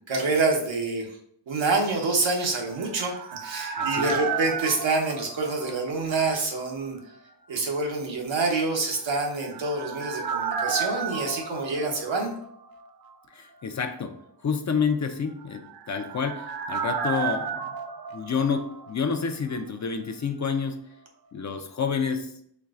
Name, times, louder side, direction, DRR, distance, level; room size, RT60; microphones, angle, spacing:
voice 1, 0.1-1.2 1.5-7.0 7.5-12.3, right 3 dB, 80° right, 1 dB, 0.9 m, -27 dB
sound 1, 2.5-6.3 6.6-6.7 9.1-12.8 13.0-13.1 15.4-19.3 19.5-19.6, right 6 dB, 55° right, 0.5 m, -33 dB
voice 2, 3.8-4.1 13.3-17.6 18.1-20.8 21.3-22.3, left 6 dB, 40° left, 6 dB, 0.5 m, -29 dB
4.5 x 3.1 x 2.4 m, 0.68 s
cardioid pair, 60°, 45 cm